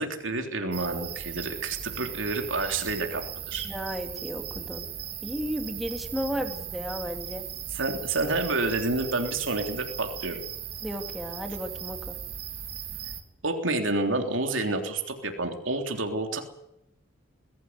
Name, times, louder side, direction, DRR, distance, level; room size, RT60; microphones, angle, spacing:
voice 1, 0.0-3.7 7.7-10.4 13.4-16.4, right 2 dB, 80° right, 4 dB, 3.4 m, -29 dB
sound 1, 0.7-13.2, right 9 dB, 50° right, 3.0 m, -38 dB
voice 2, 3.6-4.8 5.2-7.4 10.8-12.2, equal, ahead, 4 dB, 3.0 m, -34 dB
22.0 x 14.0 x 9.4 m, 0.82 s
head